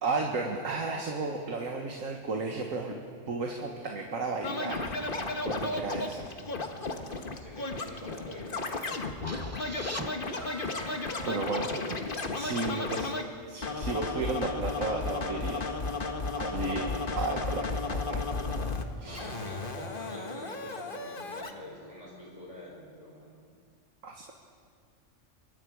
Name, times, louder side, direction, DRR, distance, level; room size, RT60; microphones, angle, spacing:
voice 1, 0.0-3.0 3.3-6.3 11.2-13.1 13.5-15.7 16.4-16.8 17.2-18.3 19.0-19.3 24.0-24.3, right 3 dB, 90° right, 1 dB, 1.9 m, -34 dB
Scratching (performance technique), 4.4-13.2 13.6-18.8 19.1-21.5, left 3 dB, 45° left, 1.4 m, -34 dB
voice 2, 7.4-9.0 16.4-17.0 19.0-23.4, left 1 dB, 25° left, -5 dB, 5.8 m, -45 dB
sound 1, 9.3-13.0, right 2 dB, 20° right, 0.5 m, -44 dB
27.0 x 23.5 x 4.8 m, 2.1 s
omnidirectional pair, 1.3 m